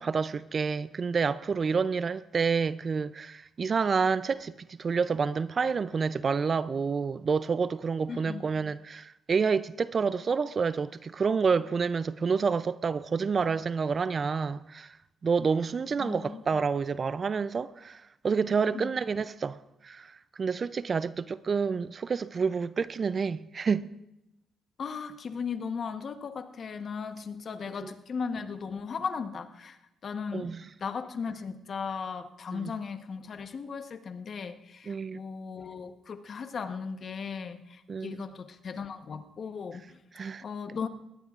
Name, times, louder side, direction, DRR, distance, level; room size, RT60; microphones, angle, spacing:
voice 1, 0.0-15.0 15.2-19.6 19.8-23.9 27.8-27.9 30.3-30.6 32.5-32.7 34.9-35.2 37.9-38.2 40.2-40.4, right 5 dB, 40° right, 0.4 m, -28 dB
voice 2, 8.1-8.5 16.0-16.4 18.7-19.0 24.8-30.5 30.8-40.0 40.4-40.9, left 5 dB, 50° left, 1.0 m, -37 dB
19.5 x 17.5 x 2.4 m
cardioid pair, 90°, 0 cm